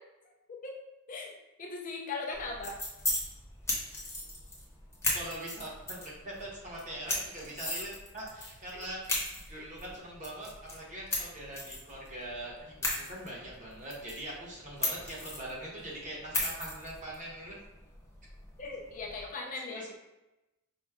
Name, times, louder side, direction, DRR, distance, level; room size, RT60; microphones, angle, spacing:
voice 1, 1.6-2.8 8.7-8.8 18.6-19.8, left 3 dB, 35° left, 0 dB, 0.5 m, -38 dB
sound 1, 2.3-19.2, left 2 dB, 10° left, 0.9 m, -38 dB
voice 2, 5.1-9.0 9.5-17.5 19.7-19.9, right 1 dB, 35° right, -4 dB, 1.1 m, -42 dB
5.1 x 2.2 x 3.5 m, 0.97 s
head